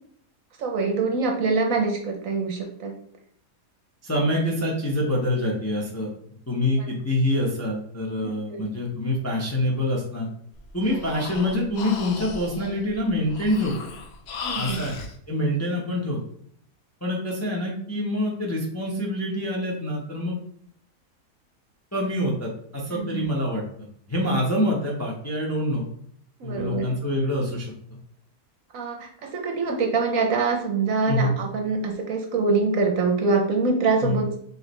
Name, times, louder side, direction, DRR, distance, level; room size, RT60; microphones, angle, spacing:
voice 1, 0.6-2.9 6.8-6.9 8.2-8.6 14.4-14.8 22.9-23.3 26.4-26.9 28.7-34.4, right 4 dB, 60° right, 2 dB, 1.0 m, -25 dB
voice 2, 4.0-6.1 6.5-10.3 10.7-13.9 14.6-15.0 15.3-16.2 17.0-20.4 21.9-23.6 24.1-25.9 26.4-27.7 31.1-31.3 34.0-34.2, left 1 dB, 15° left, -3 dB, 0.5 m, -26 dB
Breathing, 10.5-15.1, left 5 dB, 65° left, 0.6 m, -37 dB
4.9 x 3.1 x 3.2 m, 0.63 s
omnidirectional pair, 1.7 m